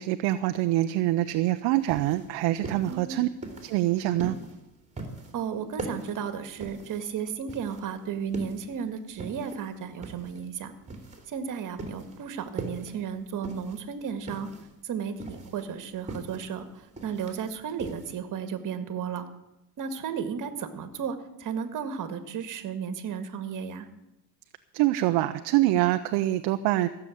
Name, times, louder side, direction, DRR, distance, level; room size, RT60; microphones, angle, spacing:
voice 1, 0.0-3.3 3.6-4.4 24.7-26.9, right 15 dB, 55° right, 8 dB, 0.8 m, -25 dB
sound 1, 1.8-18.2, right 2 dB, 15° right, 3.0 m, -41 dB
voice 2, 2.9-3.2 5.3-10.7 11.3-14.5 14.8-19.2 19.8-23.9, right 7 dB, 40° right, 9 dB, 1.9 m, -34 dB
15.5 x 7.1 x 8.5 m, 0.91 s
supercardioid pair, 105°, 47 cm